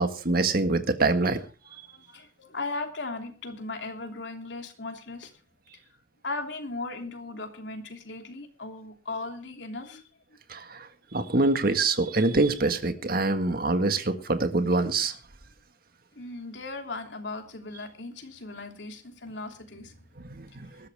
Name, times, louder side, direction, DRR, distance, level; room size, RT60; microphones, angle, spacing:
voice 1, 0.0-1.4 10.5-10.9 11.1-15.1 20.2-20.9, right 3 dB, 55° right, 8 dB, 1.8 m, -25 dB
voice 2, 1.6-5.3 6.2-10.0 16.2-20.1, left 3 dB, 80° left, 4 dB, 3.1 m, -37 dB
19.5 x 13.0 x 3.5 m, 0.33 s
head